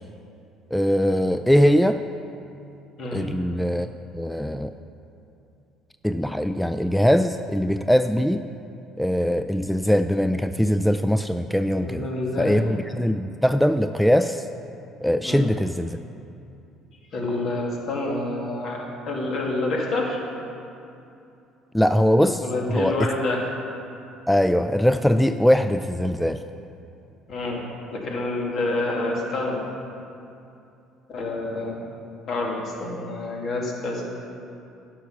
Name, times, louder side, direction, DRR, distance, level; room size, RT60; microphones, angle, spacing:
voice 1, 0.7-2.0 3.1-3.9 4.1-4.7 6.0-8.4 9.0-12.1 12.4-14.5 15.0-16.0 21.7-23.0 24.3-26.4, equal, 5° left, 9 dB, 0.3 m, -21 dB
voice 2, 11.8-12.6 15.2-15.5 17.1-20.2 22.4-23.4 27.3-29.6 31.1-31.8 32.3-34.1, left 2 dB, 60° left, -1 dB, 2.1 m, -28 dB
11.5 x 5.7 x 5.9 m, 2.7 s
hypercardioid pair, 65°, 0 cm